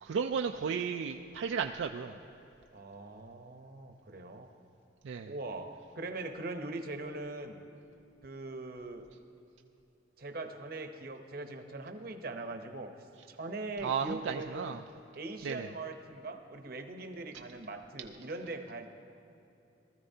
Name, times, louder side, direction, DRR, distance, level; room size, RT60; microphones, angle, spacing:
voice 1, 0.0-2.2 5.0-5.3 13.8-14.8 15.4-15.7, right 6 dB, 70° right, 5 dB, 0.4 m, -34 dB
voice 2, 2.7-4.5 5.2-7.6 8.2-9.1 10.2-12.9 13.3-14.8 15.1-18.9, right 2 dB, 50° right, 6 dB, 0.8 m, -41 dB
19.0 x 13.5 x 2.8 m, 2.8 s
head